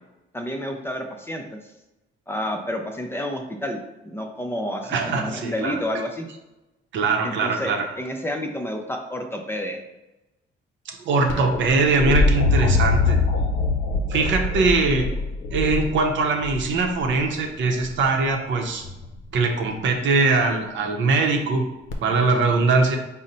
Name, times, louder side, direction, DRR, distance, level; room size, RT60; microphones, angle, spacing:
voice 1, 0.3-1.6 2.3-6.3 7.2-9.8, left 1 dB, 10° left, 3 dB, 0.5 m, -30 dB
voice 2, 4.9-5.8 6.9-7.8 10.9-13.2 14.1-15.1 15.5-18.8 19.3-21.7 22.0-23.0, right 3 dB, 70° right, 3 dB, 0.7 m, -21 dB
sound 1, 11.3-17.2 18.8-19.3 21.9-22.0, left 3 dB, 75° left, 0.6 m, -23 dB
4.1 x 2.1 x 3.9 m, 0.98 s
cardioid pair, 90°, 20 cm